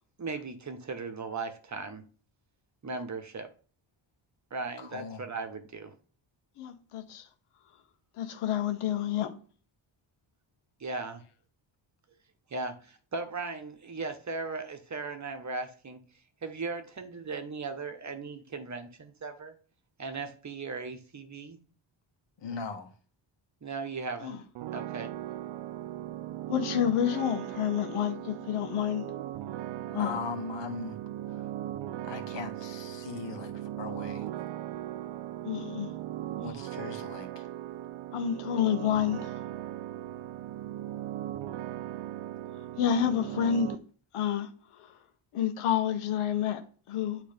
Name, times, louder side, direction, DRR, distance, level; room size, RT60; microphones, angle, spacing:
voice 1, 0.2-2.0 2.8-3.5 4.5-5.9 10.8-11.2 12.5-16.0 16.4-19.5 20.0-21.6 23.6-24.4 24.7-25.1, right 4 dB, 35° right, 1.1 m, -37 dB
voice 2, 4.8-5.2 22.4-22.9 29.8-31.0 31.3-31.4 32.0-34.3 36.4-37.5, left 4 dB, 60° left, 1.5 m, -39 dB
voice 3, 6.6-7.3 8.2-9.3 24.2-24.4 26.5-29.0 29.9-30.2 35.4-35.9 36.5-36.6 38.1-39.4 42.8-43.8 44.1-44.5 44.8-44.9 45.3-47.2, left 9 dB, 90° left, 1.1 m, -29 dB
sound 1, 24.5-43.8, right 13 dB, 80° right, 0.6 m, -38 dB
8.7 x 3.3 x 5.1 m
cardioid pair, 105°, 49 cm